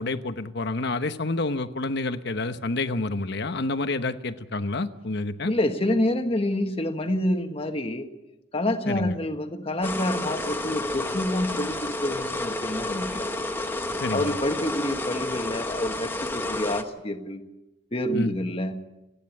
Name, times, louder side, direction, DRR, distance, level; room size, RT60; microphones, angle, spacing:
voice 1, 0.0-5.5 8.9-9.1 14.0-14.3 18.1-18.3, left 2 dB, 60° left, 10 dB, 1.1 m, -28 dB
voice 2, 5.5-8.1 8.5-13.3 14.1-17.4 17.9-18.8, left 1 dB, 30° left, 6 dB, 1.5 m, -27 dB
sound 1, 9.8-16.8, left 2 dB, 10° left, 1.2 m, -30 dB
30.0 x 10.0 x 8.6 m, 1.0 s
head